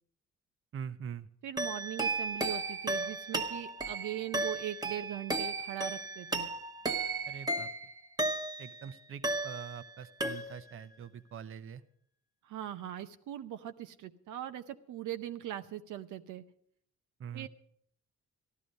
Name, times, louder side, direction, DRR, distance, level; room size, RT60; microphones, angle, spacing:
voice 1, 0.7-1.3 7.3-7.7 8.6-11.8 17.2-17.5, right 7 dB, 45° right, 13 dB, 0.7 m, -43 dB
voice 2, 1.4-6.5 12.4-16.4 17.3-17.5, right 12 dB, 80° right, 9 dB, 0.7 m, -40 dB
sound 1, 1.6-8.8 9.2-9.9 10.2-10.8, right 2 dB, 15° right, 1.1 m, -35 dB
14.0 x 11.0 x 5.2 m, 0.67 s
cardioid pair, 90°, 30 cm